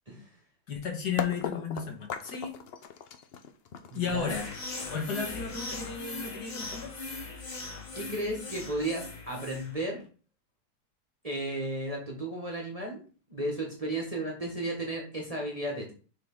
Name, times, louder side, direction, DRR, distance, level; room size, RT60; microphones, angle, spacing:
voice 1, 0.7-2.5 3.9-4.5 4.9-6.9, left 6 dB, 70° left, 2 dB, 1.9 m, -34 dB
sound 1, 1.2-7.0, left 7 dB, 90° left, 0.5 m, -39 dB
voice 2, 3.9-4.4 7.9-10.0 11.2-13.0 13.3-15.9, right 1 dB, 25° right, -1 dB, 1.2 m, -34 dB
sound 2, 4.3-9.8, left 3 dB, 30° left, 0.9 m, -40 dB
6.5 x 4.0 x 3.7 m, 0.38 s
omnidirectional pair, 1.8 m